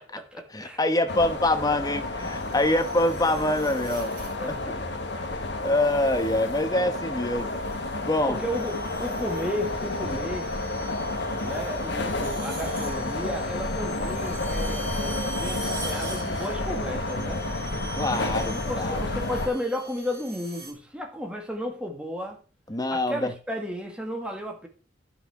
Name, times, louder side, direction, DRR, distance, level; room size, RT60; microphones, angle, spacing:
voice 1, 0.0-0.8 4.4-4.8 6.7-7.0 8.2-10.5 11.4-17.5 18.5-22.4 22.9-24.7, equal, 5° right, 1.9 m, -33 dB
voice 2, 0.5-4.1 4.5-4.6 5.6-7.5 8.0-8.4 18.0-19.0 22.7-23.3, left 1 dB, 20° left, 1.0 m, -25 dB
sound 1, 1.1-19.5, left 2 dB, 60° left, 1.7 m, -30 dB
sound 2, 2.2-4.6 5.9-6.3 7.1-20.7, right 3 dB, 45° right, 3.5 m, -44 dB
11.0 x 5.8 x 5.8 m
head